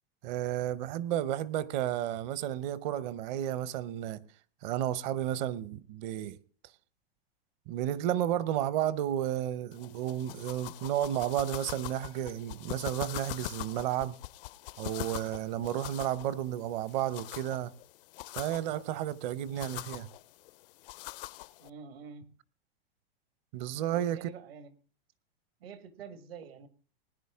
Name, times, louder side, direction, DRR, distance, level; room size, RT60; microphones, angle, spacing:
voice 1, 0.2-4.2 4.6-6.4 7.7-14.2 14.8-17.7 18.4-20.1 23.5-24.3, right 11 dB, 45° right, 0.8 m, -32 dB
sound 1, 9.7-21.7, left 17 dB, 60° left, 0.5 m, -44 dB
voice 2, 21.6-22.3 23.9-24.7 25.6-26.7, right 6 dB, 75° right, 1.8 m, -47 dB
20.0 x 10.0 x 3.6 m
hypercardioid pair, 130°, 31 cm